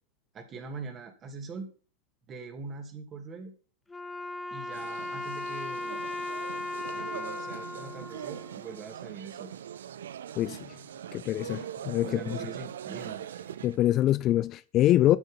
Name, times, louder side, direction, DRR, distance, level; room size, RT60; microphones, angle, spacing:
voice 1, 0.3-1.7 2.3-3.5 4.5-6.0 6.9-9.5 12.1-13.5, right 4 dB, 25° right, 2.7 m, -42 dB
Wind instrument woodwind instrument, 3.9-9.1, left 2 dB, 10° left, 1.0 m, -37 dB
sound 1, 4.6-13.8, right 10 dB, 60° right, 0.6 m, -42 dB
voice 2, 10.4-10.7 11.1-12.4 13.6-15.2, left 14 dB, 35° left, 0.4 m, -25 dB
13.0 x 6.6 x 5.4 m
figure-of-eight pair, 90°, 0 cm